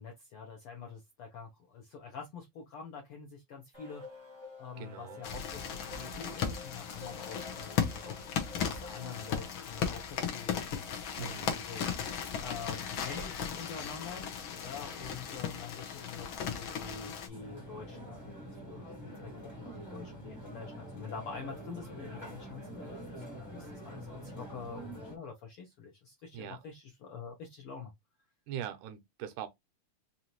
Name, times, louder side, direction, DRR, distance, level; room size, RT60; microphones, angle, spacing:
voice 1, 0.0-8.2 8.5-12.1 12.4-14.3 14.6-27.9, left 5 dB, 75° left, 1.3 m, -46 dB
sound 1, 3.7-9.5, left 2 dB, 40° right, 0.4 m, -51 dB
voice 2, 4.8-5.2 11.2-11.6 20.5-20.6 26.3-26.6 28.5-29.5, right 10 dB, 85° right, 2.2 m, -41 dB
sound 2, 5.2-17.3, left 7 dB, 90° left, 1.1 m, -36 dB
sound 3, 17.3-25.1, equal, 20° left, 0.5 m, -45 dB
5.4 x 2.5 x 2.9 m
omnidirectional pair, 3.5 m